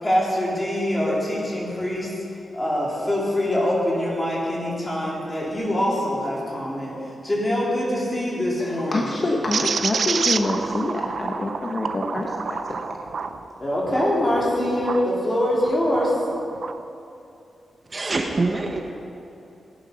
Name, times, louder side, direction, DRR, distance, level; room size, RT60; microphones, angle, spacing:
voice 1, 0.0-2.1 2.5-6.9 7.2-9.1 13.6-16.2, left 1 dB, 20° left, -5 dB, 3.9 m, -24 dB
voice 2, 8.6-13.0, left 2 dB, 35° left, 0 dB, 1.1 m, -26 dB
sound 1, 9.5-15.1 15.6-16.8, right 5 dB, 60° right, 0.6 m, -29 dB
voice 3, 17.9-18.8, right 3 dB, 35° right, 2 dB, 1.1 m, -24 dB
17.0 x 11.0 x 5.6 m, 2.7 s
wide cardioid pair, 115°, 0 cm